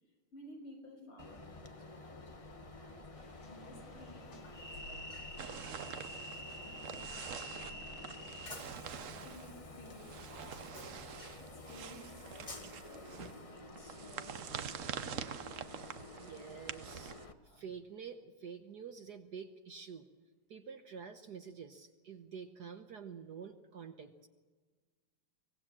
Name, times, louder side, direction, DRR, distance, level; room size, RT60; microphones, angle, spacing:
voice 1, 0.3-3.0 3.4-5.2 5.6-8.3 8.9-11.0 11.4-15.4 17.4-17.6, left 1 dB, 90° left, 1 dB, 7.1 m, -56 dB
Train, 1.2-17.3, left 1 dB, 25° left, 0.8 m, -49 dB
sound 1, 3.1-8.3, left 1 dB, 50° left, 2.9 m, -56 dB
sound 2, 5.4-17.3, right 8 dB, 75° right, 0.7 m, -46 dB
voice 2, 16.0-17.1 17.4-20.1 20.5-24.3, right 6 dB, 55° right, 7 dB, 1.4 m, -48 dB
24.0 x 18.5 x 7.6 m, 1.4 s
omnidirectional pair, 2.4 m